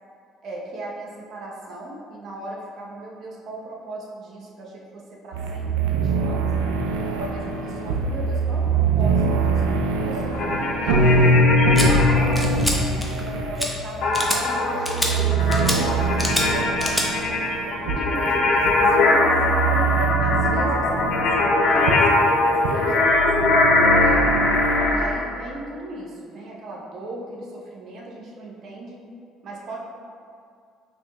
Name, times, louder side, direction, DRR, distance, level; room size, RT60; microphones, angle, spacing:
voice 1, 0.4-6.7 7.2-11.3 11.8-17.5 17.9-19.8 20.2-24.4 24.9-29.0 29.4-29.8, right 1 dB, 55° right, -2 dB, 0.8 m, -38 dB
sound 1, 5.3-24.9, right 2 dB, 85° right, 0.3 m, -23 dB
sound 2, 10.3-12.4 14.0-25.1, left 2 dB, 60° left, 0.7 m, -21 dB
sound 3, 11.8-11.9 12.4-12.8 13.0-13.3 13.6-13.7 14.1-14.4 14.9-15.1 15.5-15.8 16.2-16.5 16.8-17.1, left 1 dB, 5° left, 0.7 m, -25 dB
5.6 x 2.7 x 2.3 m, 2.3 s
hypercardioid pair, 65°, 0 cm